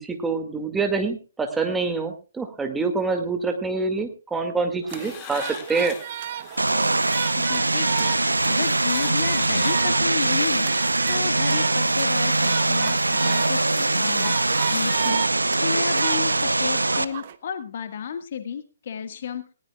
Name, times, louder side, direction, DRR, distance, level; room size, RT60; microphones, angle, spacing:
voice 1, 0.0-6.0, right 4 dB, 5° right, 5 dB, 2.1 m, -26 dB
sound 1, 4.8-17.4, right 10 dB, 40° right, 1.1 m, -34 dB
sound 2, 4.9-15.1, left 9 dB, 25° left, 2.2 m, -42 dB
Vehicle, 6.6-17.0, right 2 dB, 80° right, 0.7 m, -22 dB
voice 2, 7.4-8.1 8.4-14.4 14.7-15.2 15.5-19.4, left 7 dB, 45° left, 9 dB, 1.6 m, -32 dB
19.5 x 18.0 x 2.3 m, 0.36 s
figure-of-eight pair, 135°, 0 cm